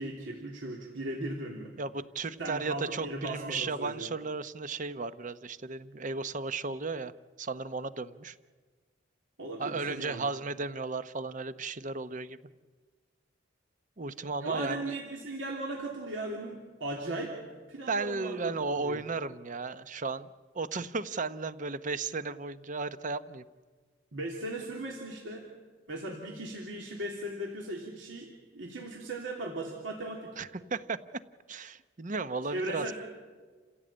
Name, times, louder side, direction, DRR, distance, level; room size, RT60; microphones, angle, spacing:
voice 1, 0.0-1.7 2.4-4.1 9.4-10.2 14.4-17.4 17.7-19.0 24.1-25.5 25.9-30.3 32.5-32.9, right 1 dB, 80° right, -1 dB, 3.2 m, -37 dB
voice 2, 1.8-7.1 7.4-8.4 9.6-12.4 14.0-14.9 17.9-20.3 20.5-23.4 30.4-31.0 31.5-32.9, right 4 dB, 45° right, 12 dB, 0.8 m, -35 dB
28.5 x 16.0 x 8.8 m, 1.4 s
head